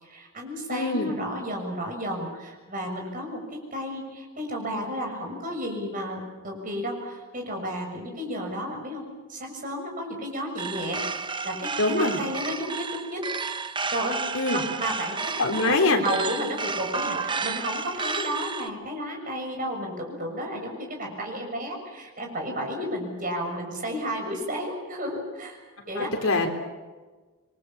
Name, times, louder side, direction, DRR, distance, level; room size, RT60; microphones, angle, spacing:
voice 1, 0.0-11.0 11.4-13.2 13.9-14.2 14.5-25.6 25.9-26.4, equal, 40° right, 1 dB, 6.6 m, -32 dB
voice 2, 0.7-1.1 11.8-12.2 14.3-14.6 15.4-16.0 26.0-26.5, left 2 dB, 75° left, 4 dB, 3.8 m, -23 dB
sound 1, 10.6-18.7, right 4 dB, 20° right, 0.9 m, -32 dB
27.0 x 23.0 x 7.2 m, 1.3 s
head